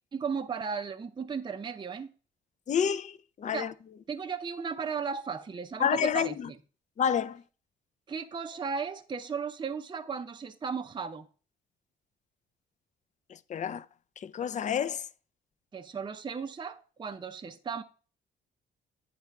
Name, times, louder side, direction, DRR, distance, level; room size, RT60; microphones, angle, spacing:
voice 1, 0.1-2.1 3.5-3.7 4.1-6.4 8.1-11.3 15.7-17.8, right 6 dB, 25° right, 0.6 m, -35 dB
voice 2, 2.7-3.7 5.8-6.5 7.0-7.4 13.3-13.9 14.2-15.0, left 8 dB, 40° left, 0.5 m, -29 dB
9.1 x 3.4 x 5.8 m
cardioid pair, 90°, 20 cm